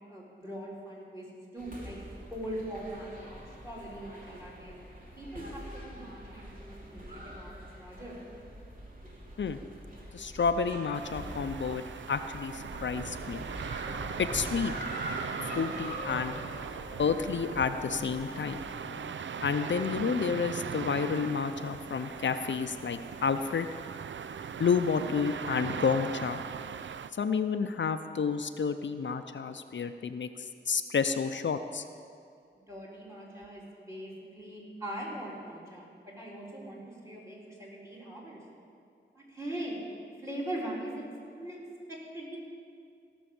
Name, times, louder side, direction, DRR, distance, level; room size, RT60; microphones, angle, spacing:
voice 1, 0.1-1.3 1.5-2.0 2.3-4.8 5.2-8.1 32.5-38.4 39.1-39.8 40.2-41.1 41.3-41.6 41.9-42.4, right 1 dB, 15° right, -4 dB, 3.7 m, -41 dB
sound 1, 1.6-18.7, equal, 45° right, 2.7 m, -44 dB
voice 2, 10.1-11.8 12.1-13.4 14.2-14.7 15.6-16.4 17.0-18.6 19.4-23.7 24.6-26.4 27.2-30.3 30.7-31.8, left 6 dB, 75° left, 9 dB, 0.5 m, -30 dB
sound 2, 10.9-27.1, right 7 dB, 80° right, 0.4 m, -39 dB
sound 3, 13.8-19.1, left 3 dB, 35° left, 0.7 m, -47 dB
17.0 x 6.2 x 7.1 m, 2.3 s
wide cardioid pair, 65°, 19 cm